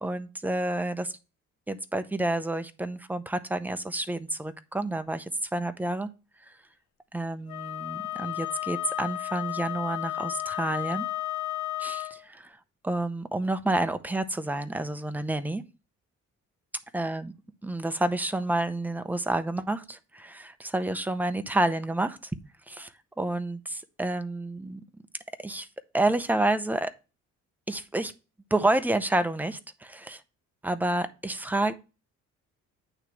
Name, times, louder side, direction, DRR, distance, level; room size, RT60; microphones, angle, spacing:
voice 1, 0.0-1.1 1.7-6.1 7.1-11.1 11.8-12.6 12.8-15.6 16.9-17.3 17.6-22.3 22.7-22.9 23.2-24.8 25.4-25.7 25.9-26.9 27.7-28.1 28.5-30.2 30.6-31.7, right 2 dB, 5° right, 11 dB, 0.7 m, -29 dB
Wind instrument woodwind instrument, 7.5-12.2, left 14 dB, 70° left, 0.7 m, -33 dB
8.8 x 3.2 x 6.0 m, 0.30 s
cardioid pair, 90°, 30 cm